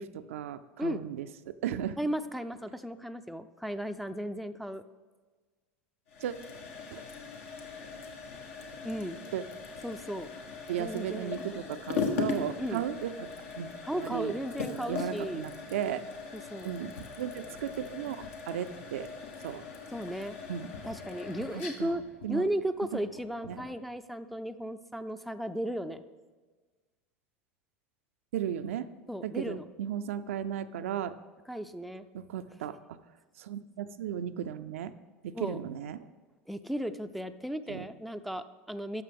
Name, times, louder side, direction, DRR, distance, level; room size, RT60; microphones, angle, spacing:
voice 1, 0.0-2.0 6.2-6.3 6.9-7.0 9.3-9.4 10.7-13.3 13.5-13.7 14.0-14.3 14.9-16.0 16.6-16.9 17.2-19.1 19.4-19.6 20.5-20.7 21.5-22.0 22.2-22.5 23.5-23.6 28.3-28.9 29.2-31.1 32.1-32.8 33.4-34.9 35.2-36.1 37.7-37.9, right 9 dB, 75° right, 11 dB, 0.4 m, -35 dB
voice 2, 2.0-4.8 8.8-9.2 9.8-10.3 10.8-11.4 12.6-12.9 13.8-15.4 16.3-16.7 19.9-20.4 20.8-22.0 22.3-26.0 29.1-29.6 31.5-32.0 35.3-35.6 36.5-39.0, right 1 dB, ahead, 9 dB, 0.4 m, -35 dB
sound 1, 6.1-23.8, left 5 dB, 75° left, 1.2 m, -40 dB
12.5 x 6.0 x 3.5 m, 1.4 s
hypercardioid pair, 90°, 7 cm